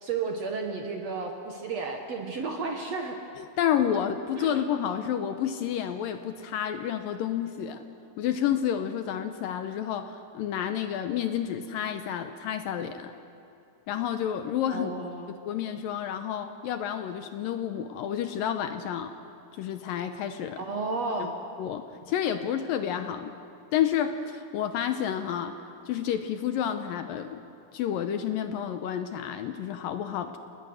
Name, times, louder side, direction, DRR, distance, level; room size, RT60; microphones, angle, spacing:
voice 1, 0.0-3.2 4.4-4.6 14.7-15.4 20.6-21.3, right 4 dB, 55° right, 3 dB, 2.1 m, -32 dB
voice 2, 3.4-7.8 8.2-13.1 13.9-14.9 15.5-19.1 19.6-20.6 21.6-23.3 23.7-25.6 25.9-27.4 27.7-30.4, left 9 dB, 75° left, 8 dB, 2.3 m, -30 dB
29.5 x 19.0 x 6.4 m, 2.8 s
omnidirectional pair, 4.6 m